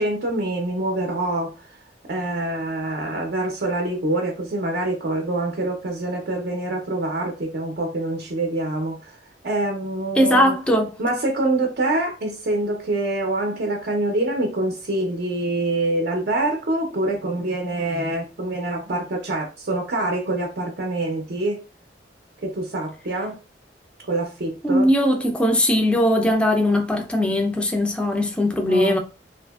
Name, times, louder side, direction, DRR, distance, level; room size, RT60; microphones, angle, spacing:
voice 1, 0.0-1.5 2.1-9.2 9.4-10.6 11.0-21.6 22.4-23.4 24.1-24.9 28.7-29.0, right 2 dB, 60° right, 0.5 m, -25 dB
voice 2, 10.2-10.9 24.6-29.0, left 1 dB, 5° left, 0.4 m, -19 dB
2.7 x 2.5 x 2.3 m
head